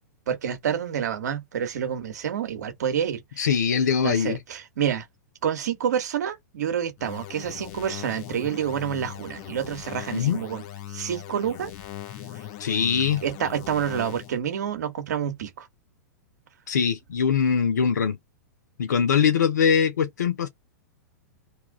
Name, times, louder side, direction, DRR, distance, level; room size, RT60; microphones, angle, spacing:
voice 1, 0.3-3.4 4.0-5.1 5.4-10.6 10.9-11.7 13.2-15.7, right 8 dB, 70° right, 1.1 m, -28 dB
voice 2, 3.4-4.4 10.1-10.4 12.6-13.2 16.7-18.2 18.8-20.5, left 7 dB, 80° left, 0.6 m, -22 dB
sound 1, 7.0-14.4, left 12 dB, 45° left, 0.9 m, -39 dB
2.9 x 2.4 x 3.6 m
hypercardioid pair, 110°, 9 cm